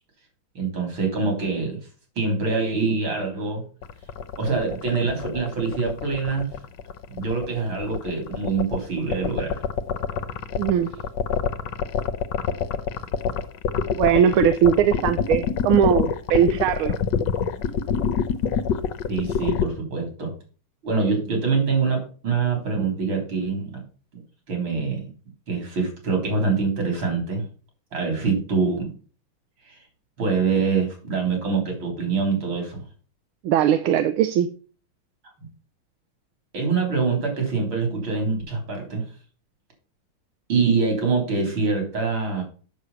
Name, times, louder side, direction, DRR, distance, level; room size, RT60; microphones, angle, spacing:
voice 1, 0.6-1.8 2.2-3.6 4.4-6.5 7.1-9.6 19.1-20.3 20.8-23.8 24.5-25.1 25.5-27.5 27.9-28.9 29.6-29.8 30.2-32.8 36.5-39.1 40.5-42.4, right 4 dB, 70° right, 4.1 m, -24 dB
sound 1, 3.8-19.6, left 7 dB, 65° left, 1.3 m, -25 dB
voice 2, 10.6-11.0 13.9-17.0 33.4-34.5, right 9 dB, 90° right, 1.5 m, -20 dB
8.3 x 6.8 x 5.6 m
omnidirectional pair, 2.3 m